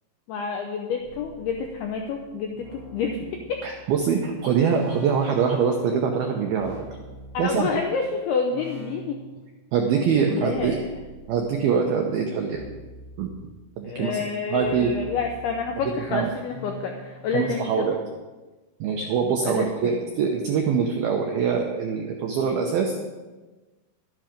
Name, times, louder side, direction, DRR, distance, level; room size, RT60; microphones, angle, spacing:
voice 1, 0.3-3.7 7.3-9.2 10.3-10.9 13.8-17.9 19.4-20.0, left 5 dB, 80° left, 3 dB, 2.3 m, -29 dB
sound 1, 1.0-8.0 8.5-9.6 10.5-11.7 12.5-13.7 14.5-17.3, right 1 dB, 45° left, 6.0 m, -43 dB
voice 2, 3.6-6.7 7.4-7.7 9.7-10.8 11.3-12.6 13.2-13.3 13.8-14.2 14.5-14.9 16.1-16.3 17.3-18.0 18.8-23.0, right 6 dB, 80° right, 2 dB, 2.2 m, -24 dB
12.5 x 10.5 x 5.2 m, 1.2 s
omnidirectional pair, 5.6 m